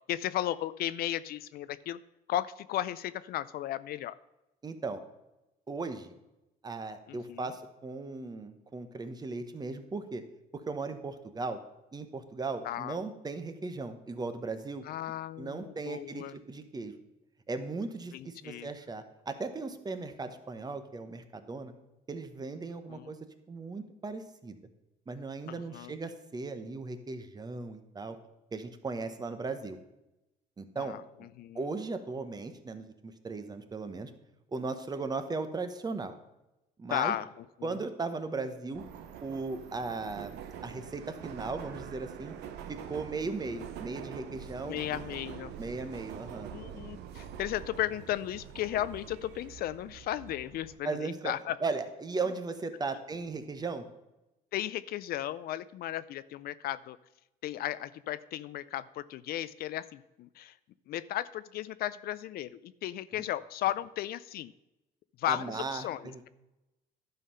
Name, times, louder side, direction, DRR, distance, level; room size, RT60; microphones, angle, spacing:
voice 1, 0.1-2.0 2.3-4.2 7.1-7.5 12.6-13.0 14.9-16.3 18.1-18.7 22.9-23.1 25.5-26.0 30.8-31.0 31.4-31.6 36.9-37.3 37.6-37.7 44.6-45.5 46.5-51.6 54.5-57.0 57.4-60.5 60.9-64.5 65.2-66.3, left 13 dB, 65° left, 16 dB, 0.4 m, -35 dB
voice 2, 4.6-5.0 5.7-6.1 6.6-10.2 10.5-11.6 11.9-14.9 15.4-16.9 17.5-21.7 22.1-23.2 23.5-24.6 25.1-28.2 28.5-29.8 30.6-31.0 31.5-34.1 34.5-36.1 36.8-37.1 37.6-38.8 39.2-42.3 42.7-44.8 45.6-46.5 50.8-51.3 51.6-53.8 65.3-66.3, right 3 dB, 25° right, 9 dB, 1.0 m, -37 dB
Subway metro underground, 38.7-50.8, right 8 dB, 85° right, 0.9 m, -45 dB
11.5 x 5.6 x 5.6 m, 0.96 s
cardioid pair, 110°, 17 cm